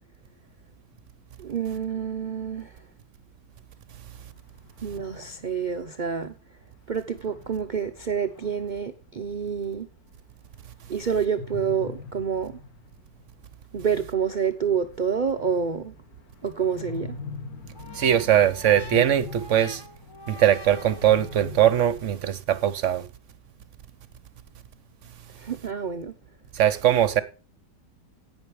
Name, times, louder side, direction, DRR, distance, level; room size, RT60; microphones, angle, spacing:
voice 1, 1.4-2.8 4.8-6.3 6.9-9.9 10.9-12.6 13.7-15.9 16.4-17.2 25.4-26.1, right 7 dB, 80° right, 0.4 m, -28 dB
sound 1, 4.1-6.0 7.1-9.0 11.1-13.5 13.8-13.9 14.1-14.2 14.4-22.2, left 4 dB, 60° left, 2.1 m, -43 dB
sound 2, 17.7-21.6, left 2 dB, 25° left, 0.5 m, -45 dB
voice 2, 17.9-19.9 20.3-23.1 26.5-27.2, right 10 dB, 55° right, 0.9 m, -21 dB
18.0 x 6.2 x 3.2 m
omnidirectional pair, 1.8 m